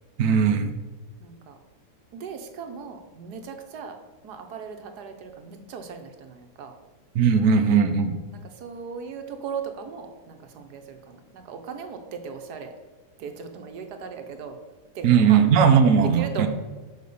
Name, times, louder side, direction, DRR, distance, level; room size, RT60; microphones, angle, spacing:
voice 1, 0.2-0.8 7.1-8.2 15.0-16.5, right 6 dB, 65° right, 6 dB, 1.1 m, -18 dB
voice 2, 1.2-1.6 2.1-4.0 4.2-6.8 8.4-12.7 13.2-14.6 14.9-15.4 16.1-16.5, right 6 dB, 80° right, 6 dB, 1.4 m, -38 dB
6.7 x 5.1 x 5.4 m, 1.3 s
omnidirectional pair, 1.7 m